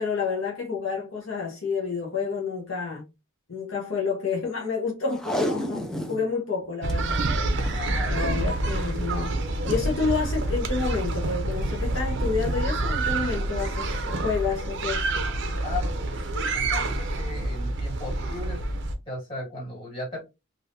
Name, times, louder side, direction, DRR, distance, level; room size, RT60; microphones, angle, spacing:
voice 1, 0.0-3.0 3.5-7.3 8.1-9.4 9.6-15.0, left 5 dB, 70° left, 0.8 m, -29 dB
Packing tape duct tape, 5.1-6.3 6.6-6.7 6.9-7.0 7.5-7.9 8.9-9.1 9.7-9.8, equal, 5° left, 0.5 m, -30 dB
sound 1, 6.8-18.9, right 2 dB, 60° right, 0.6 m, -27 dB
voice 2, 7.5-8.2 15.6-18.6 19.1-20.2, left 2 dB, 25° left, 1.9 m, -36 dB
3.4 x 2.6 x 2.5 m
head